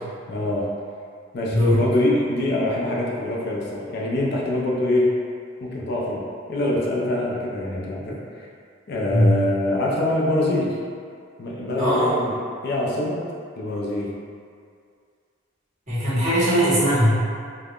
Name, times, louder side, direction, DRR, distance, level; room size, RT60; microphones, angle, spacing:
voice 1, 0.3-0.7 1.3-5.1 5.6-6.2 6.5-8.5 8.9-10.8 11.4-12.4 12.6-13.2 13.6-14.1, left 1 dB, 55° left, -3 dB, 0.4 m, -24 dB
voice 2, 1.5-1.8 9.1-9.4 11.8-12.1 15.9-17.2, equal, 40° right, -14 dB, 1.2 m, -19 dB
3.4 x 2.1 x 2.3 m, 2.2 s
head